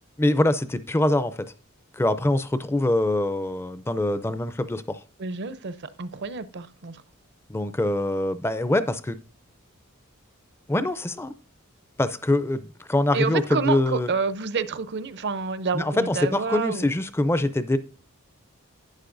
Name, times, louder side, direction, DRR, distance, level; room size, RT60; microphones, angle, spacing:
voice 1, 0.2-1.4 1.9-5.0 7.5-9.2 10.7-11.3 12.0-14.1 15.7-17.8, left 1 dB, 10° left, 13 dB, 0.4 m, -24 dB
voice 2, 5.2-5.7 6.0-7.0 13.1-16.9, right 4 dB, 55° right, 14 dB, 0.6 m, -28 dB
11.5 x 8.9 x 2.6 m, 0.40 s
head